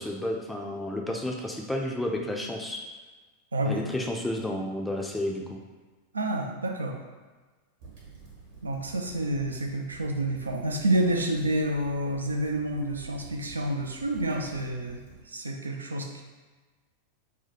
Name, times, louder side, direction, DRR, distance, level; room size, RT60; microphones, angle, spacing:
voice 1, 0.0-2.8 3.7-5.6, left 1 dB, 5° left, 0 dB, 0.4 m, -31 dB
voice 2, 3.5-3.8 6.1-7.0 8.6-16.2, right 1 dB, 75° right, 2 dB, 0.4 m, -29 dB
sound 1, 7.8-15.2, right 5 dB, 55° right, 1.0 m, -49 dB
2.7 x 2.2 x 4.1 m, 1.3 s
figure-of-eight pair, 90°, 0 cm